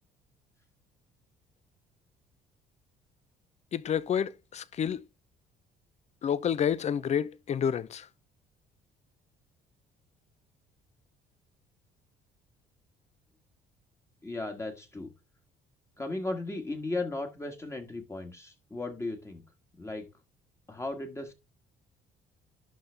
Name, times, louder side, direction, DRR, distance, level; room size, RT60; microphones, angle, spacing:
voice 1, 3.7-5.0 6.2-8.1, left 8 dB, 40° left, 0.7 m, -29 dB
voice 2, 14.2-15.1 16.0-19.4 19.7-20.1 20.7-21.3, left 2 dB, 15° left, 1.6 m, -36 dB
11.5 x 3.9 x 3.4 m
cardioid pair, 110°, 17 cm